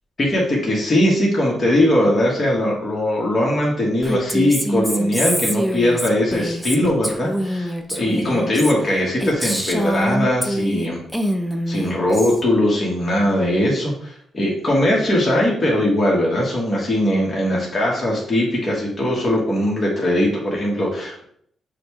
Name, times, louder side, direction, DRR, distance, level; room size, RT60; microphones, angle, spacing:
voice 1, 0.2-11.0 11.7-21.2, left 1 dB, 30° left, -4 dB, 1.3 m, -20 dB
Female speech woman speaking, 4.0-10.9 11.1-12.4, equal, ahead, 0.5 m, -25 dB
6.4 x 2.3 x 3.0 m, 0.66 s
cardioid pair, 90°, 0 cm